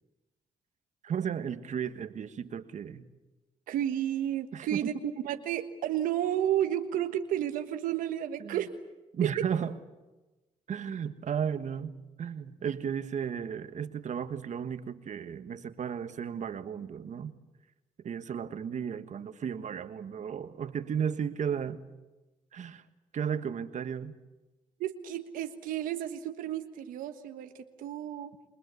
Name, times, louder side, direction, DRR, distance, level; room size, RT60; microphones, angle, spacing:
voice 1, 1.0-3.0 4.5-4.9 8.4-8.6 9.1-9.7 10.7-11.9 12.2-17.3 18.0-21.8 22.5-22.8 23.1-24.1, right 7 dB, 60° right, 11 dB, 1.5 m, -34 dB
voice 2, 3.7-8.7 9.2-9.4 24.8-27.5 27.8-28.3, right 11 dB, 85° right, 7 dB, 1.4 m, -32 dB
28.0 x 21.0 x 8.3 m, 1.1 s
supercardioid pair, 65°, 14 cm